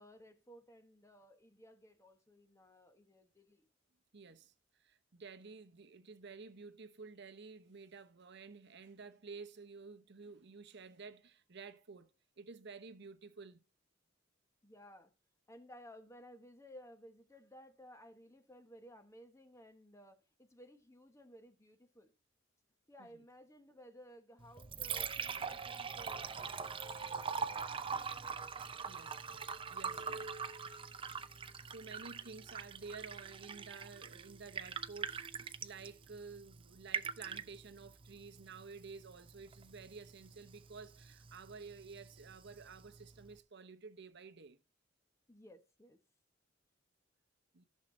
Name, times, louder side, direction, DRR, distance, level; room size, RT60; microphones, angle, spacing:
voice 1, 0.0-3.6 14.6-15.1 15.5-22.1 22.9-28.1 30.0-30.2 45.3-46.0, equal, 15° left, 1.2 m, -58 dB
voice 2, 4.1-13.6 23.0-23.1 28.9-30.3 31.6-44.6 47.5-47.7, right 4 dB, 60° right, 0.9 m, -52 dB
Liquid, 24.4-43.4, right 6 dB, 25° right, 0.6 m, -44 dB
14.0 x 6.5 x 2.7 m
head